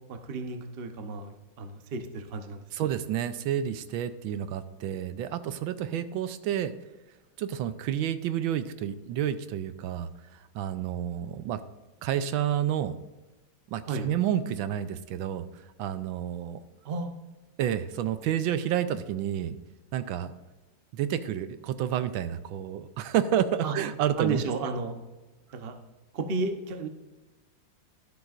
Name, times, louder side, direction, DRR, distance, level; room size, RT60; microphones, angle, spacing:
voice 1, 0.1-2.6 13.9-14.1 16.8-17.1 23.6-23.7 24.2-25.0 25.5-25.7 26.1-26.9, right 3 dB, 45° right, 7 dB, 0.8 m, -32 dB
voice 2, 2.7-6.7 7.4-11.6 12.0-13.0 13.7-15.5 15.8-16.6 17.6-19.6 19.9-20.3 20.9-24.4, right 10 dB, 85° right, 12 dB, 1.4 m, -30 dB
12.0 x 11.5 x 2.5 m, 1.1 s
omnidirectional pair, 2.2 m